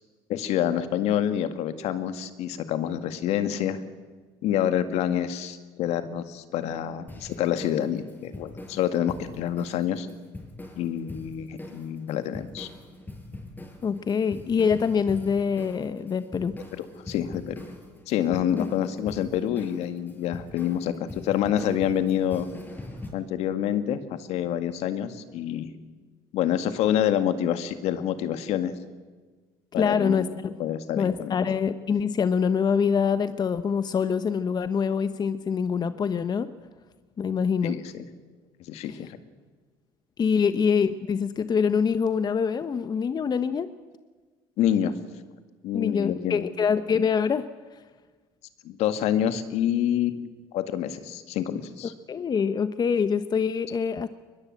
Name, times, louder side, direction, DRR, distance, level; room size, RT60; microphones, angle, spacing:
voice 1, 0.3-3.8 4.4-10.1 10.8-12.7 16.8-17.6 18.1-22.5 23.1-25.7 26.3-28.7 29.7-30.3 30.6-31.4 37.6-37.8 38.7-39.2 44.6-44.9 45.6-46.4 48.6-50.3 50.5-51.9, left 10 dB, 70° left, 10 dB, 1.9 m, -27 dB
sound 1, 7.1-23.1, left 2 dB, 15° left, 6.4 m, -43 dB
voice 2, 13.8-16.6 18.6-18.7 29.8-30.5 30.9-36.5 37.2-37.8 40.2-43.7 45.7-47.5 47.7-47.8 52.1-54.1, left 6 dB, 35° left, 12 dB, 1.0 m, -25 dB
22.0 x 21.0 x 7.8 m, 1.4 s
supercardioid pair, 75°, 11 cm